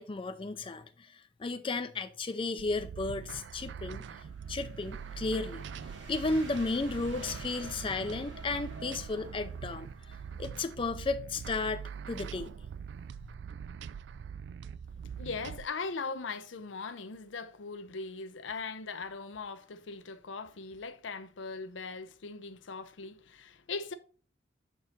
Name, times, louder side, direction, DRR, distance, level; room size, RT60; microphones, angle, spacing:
voice 1, 0.0-5.7 6.1-9.9 10.4-12.5, left 3 dB, 30° left, 0.4 m, -34 dB
sound 1, 2.6-15.7, right 7 dB, 65° right, 0.3 m, -43 dB
sound 2, 3.8-10.5, right 2 dB, 90° right, 1.8 m, -49 dB
voice 2, 15.2-23.9, left 4 dB, 90° left, 0.6 m, -40 dB
6.1 x 4.6 x 4.3 m
head